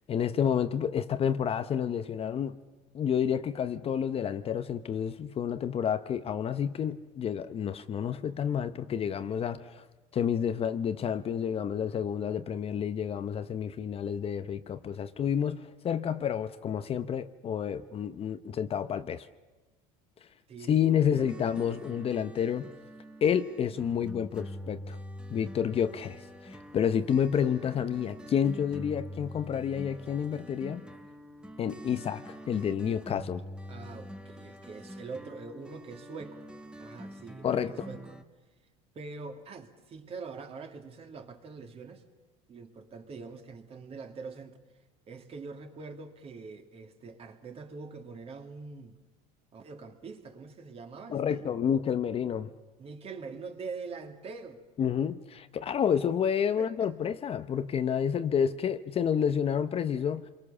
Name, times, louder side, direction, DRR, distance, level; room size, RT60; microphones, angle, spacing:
voice 1, 0.1-2.6 2.9-9.8 10.1-19.3 20.7-22.7 23.2-25.0 25.3-30.8 31.6-33.4 37.4-37.9 51.1-52.5 54.8-60.3, left 8 dB, 35° left, 0.9 m, -29 dB
voice 2, 20.5-21.5 33.7-36.5 36.8-38.2 38.9-42.0 42.5-44.6 45.1-49.0 49.5-51.5 52.8-54.6 56.6-56.9, right 4 dB, 35° right, 2.7 m, -44 dB
sound 1, 21.2-38.2, equal, 5° right, 1.5 m, -45 dB
27.5 x 23.0 x 7.0 m
supercardioid pair, 120°, 17 cm